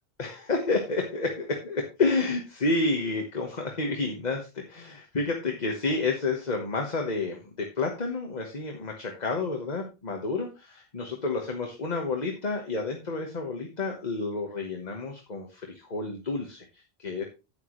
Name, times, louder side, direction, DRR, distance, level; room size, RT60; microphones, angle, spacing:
voice 1, 0.2-17.3, left 3 dB, 35° left, 2 dB, 1.4 m, -30 dB
10.5 x 9.1 x 3.2 m, 0.28 s
omnidirectional pair, 1.3 m